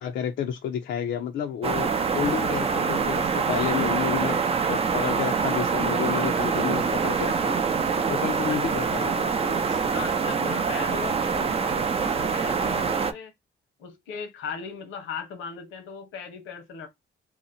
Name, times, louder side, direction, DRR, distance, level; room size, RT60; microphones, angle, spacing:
voice 1, 0.0-4.4 4.7-7.6 8.1-9.8, left 9 dB, 65° left, 0.5 m, -30 dB
sound 1, 1.6-13.1, right 5 dB, 30° right, 0.5 m, -25 dB
voice 2, 9.9-13.3 13.8-16.9, left 6 dB, 90° left, 1.1 m, -38 dB
2.8 x 2.1 x 4.0 m
cardioid pair, 90°, 20 cm